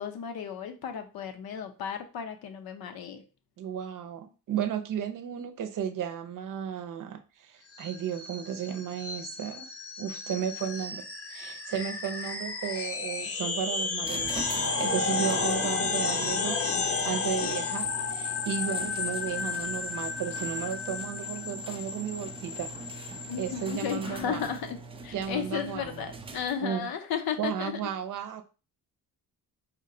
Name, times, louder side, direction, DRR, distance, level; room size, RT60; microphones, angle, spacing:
voice 1, 0.0-3.2 14.9-15.0 23.3-27.8, left 8 dB, 75° left, 7 dB, 0.7 m, -34 dB
voice 2, 3.6-9.7 10.0-11.0 11.3-22.7 23.4-24.4 25.1-25.9 26.6-26.9 27.4-28.4, right 8 dB, 60° right, 7 dB, 0.6 m, -34 dB
sound 1, 7.7-24.0, left 4 dB, 40° left, 0.7 m, -32 dB
sound 2, 14.0-26.8, right 3 dB, 15° right, 0.3 m, -43 dB
4.5 x 2.2 x 3.7 m, 0.33 s
cardioid pair, 130°, 37 cm